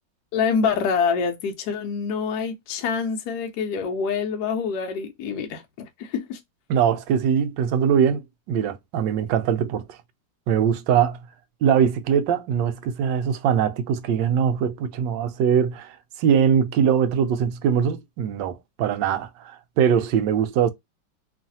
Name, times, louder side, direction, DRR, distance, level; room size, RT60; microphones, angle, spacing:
voice 1, 0.3-6.4, left 6 dB, 70° left, 1.1 m, -26 dB
voice 2, 6.7-10.0 10.5-11.2 11.6-20.7, right 8 dB, 75° right, 1.2 m, -22 dB
3.1 x 2.4 x 2.6 m
omnidirectional pair, 2.1 m